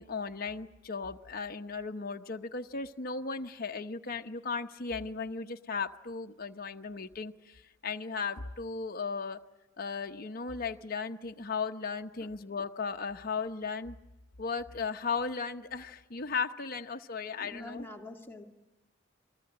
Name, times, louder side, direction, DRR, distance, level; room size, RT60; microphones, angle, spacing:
voice 1, 0.0-9.4 9.8-14.0 14.4-17.9, left 5 dB, 50° left, 5 dB, 0.9 m, -36 dB
voice 2, 17.4-18.4, left 1 dB, 10° left, 3 dB, 2.1 m, -45 dB
29.0 x 20.5 x 8.8 m, 1.0 s
head